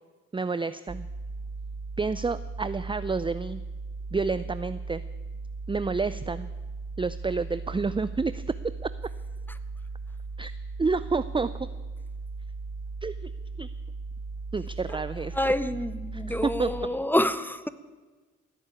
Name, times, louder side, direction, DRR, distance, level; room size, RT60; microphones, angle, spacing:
voice 1, 0.3-1.1 2.0-3.6 4.1-5.0 5.7-6.5 7.0-8.9 10.4-10.5 10.8-11.7 13.0-13.3 13.6-13.7 14.5-15.5 16.1-16.7, right 4 dB, 15° right, 15 dB, 0.5 m, -29 dB
sound 1, 0.9-16.9, right 3 dB, 50° right, 1.9 m, -37 dB
voice 2, 15.3-17.7, left 1 dB, 5° left, 14 dB, 1.0 m, -27 dB
16.0 x 8.3 x 8.8 m, 1.3 s
hypercardioid pair, 40°, 34 cm